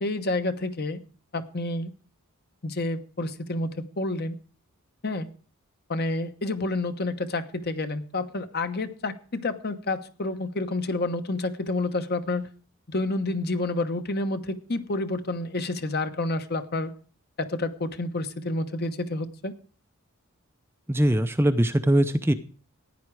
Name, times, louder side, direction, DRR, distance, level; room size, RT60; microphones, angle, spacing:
voice 1, 0.0-1.0 1.3-1.9 2.6-4.3 5.0-5.3 5.9-12.5 12.9-16.9 17.4-19.5, left 2 dB, 45° left, 9 dB, 1.0 m, -29 dB
voice 2, 20.9-22.3, right 1 dB, 10° right, 8 dB, 0.5 m, -21 dB
15.0 x 9.9 x 4.7 m, 0.41 s
head